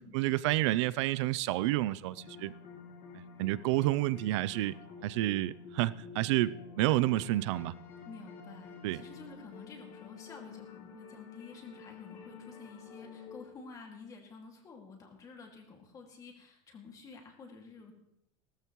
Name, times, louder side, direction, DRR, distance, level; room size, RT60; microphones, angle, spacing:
voice 1, 0.1-2.5 3.4-4.7 5.0-7.7 8.8-9.0, right 16 dB, 65° right, 0.5 m, -29 dB
sound 1, 2.1-13.5, left 6 dB, 45° left, 2.2 m, -49 dB
voice 2, 8.0-17.9, left 4 dB, 20° left, 2.2 m, -50 dB
17.5 x 14.0 x 3.1 m
supercardioid pair, 165°, 16 cm